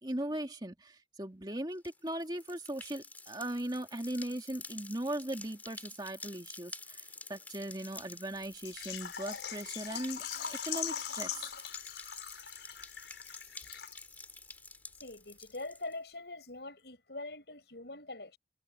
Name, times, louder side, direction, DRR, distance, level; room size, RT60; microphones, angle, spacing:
voice 1, 0.0-11.5, right 1 dB, 25° right, 2.5 m, -39 dB
sound 1, 1.7-15.9, left 3 dB, 10° left, 2.8 m, -50 dB
Water / Liquid, 8.7-14.3 14.5-14.6 15.1-15.2, left 9 dB, 90° left, 6.2 m, -41 dB
voice 2, 15.0-18.4, left 2 dB, 70° left, 6.2 m, -43 dB
head